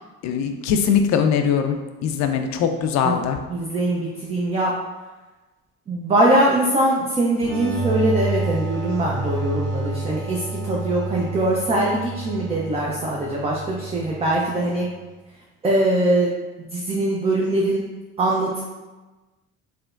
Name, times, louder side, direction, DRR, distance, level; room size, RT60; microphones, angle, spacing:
voice 1, 0.2-1.8 2.0-3.4, left 7 dB, 50° left, 6 dB, 0.4 m, -21 dB
voice 2, 3.5-4.7 5.9-14.9 15.6-16.3 16.7-17.8 18.2-18.6, right 1 dB, 20° right, -3 dB, 0.4 m, -22 dB
sound 1, 7.4-14.9, right 2 dB, 80° right, 0.7 m, -29 dB
3.3 x 2.1 x 2.4 m, 1.2 s
hypercardioid pair, 70°, 36 cm